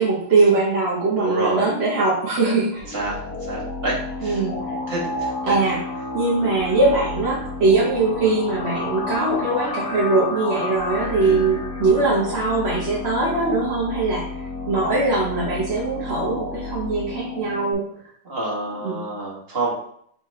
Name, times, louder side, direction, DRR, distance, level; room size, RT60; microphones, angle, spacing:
voice 1, 0.0-2.9 4.2-4.7 5.5-5.8 6.1-17.9 18.8-19.0, right 3 dB, 50° right, -7 dB, 0.8 m, -21 dB
voice 2, 1.2-1.7 2.9-4.4 4.9-5.8 6.3-6.5 11.2-11.4 18.2-19.7, right 2 dB, 30° right, -5 dB, 1.4 m, -28 dB
sound 1, 2.8-17.7, left 2 dB, 60° left, 1.1 m, -31 dB
4.2 x 4.1 x 3.1 m, 0.66 s
omnidirectional pair, 2.4 m